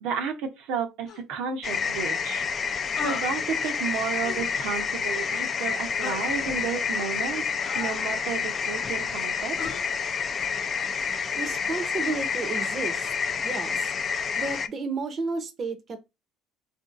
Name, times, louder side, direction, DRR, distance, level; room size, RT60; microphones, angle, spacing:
voice 1, 0.0-2.4 3.0-7.4 7.7-9.6, right 7 dB, 75° right, 0.7 m, -32 dB
sound 1, 1.1-1.2 3.0-3.3 4.2-4.6 6.0-6.3 7.6-8.4 9.6-9.8, left 6 dB, 55° left, 0.8 m, -36 dB
sound 2, 1.6-14.7, left 6 dB, 40° left, 0.3 m, -29 dB
voice 2, 11.4-13.1 13.4-13.9 14.4-16.0, right 4 dB, 40° right, 0.6 m, -32 dB
3.6 x 2.6 x 2.4 m
supercardioid pair, 90°, 0 cm